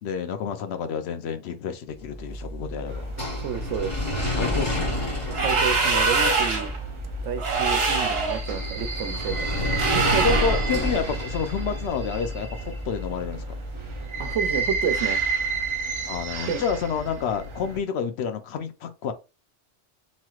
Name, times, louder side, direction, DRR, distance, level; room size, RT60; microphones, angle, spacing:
voice 1, 0.0-3.2 4.4-5.1 10.2-13.4 16.1-19.1, left 6 dB, 70° left, 0.8 m, -29 dB
sound 1, 2.0-15.1, equal, 15° left, 1.2 m, -31 dB
sound 2, 2.9-17.8, right 3 dB, 45° right, 0.4 m, -33 dB
voice 2, 3.4-4.0 5.3-6.7 7.2-9.5 9.8-10.3 14.2-15.2 16.5-16.6, right 8 dB, 90° right, 0.9 m, -30 dB
sound 3, 5.3-6.8 7.4-8.4 9.7-10.7, right 4 dB, 60° right, 1.1 m, -23 dB
3.0 x 2.9 x 2.3 m
omnidirectional pair, 1.2 m